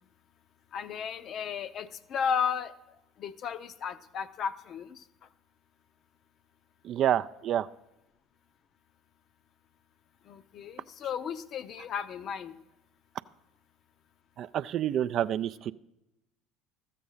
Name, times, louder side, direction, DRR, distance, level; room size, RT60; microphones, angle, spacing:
voice 1, 0.7-2.7 3.2-5.0 10.3-12.5, left 7 dB, 50° left, 12 dB, 0.6 m, -34 dB
voice 2, 6.8-7.7 14.4-15.7, right 11 dB, 50° right, 14 dB, 0.3 m, -28 dB
13.0 x 7.5 x 5.6 m, 0.93 s
hypercardioid pair, 65°, 0 cm